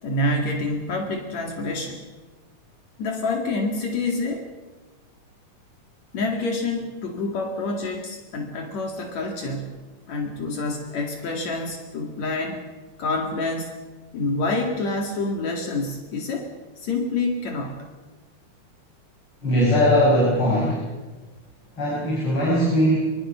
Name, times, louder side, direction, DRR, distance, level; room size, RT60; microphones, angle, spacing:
voice 1, 0.0-2.0 3.0-4.5 6.1-9.8 10.1-12.6 13.0-13.8 14.1-16.5 16.8-17.8, left 2 dB, 70° left, 2 dB, 3.4 m, -27 dB
voice 2, 19.4-20.8 21.8-23.0, equal, 45° left, -4 dB, 6.5 m, -20 dB
24.5 x 24.5 x 5.7 m, 1.2 s
omnidirectional pair, 3.4 m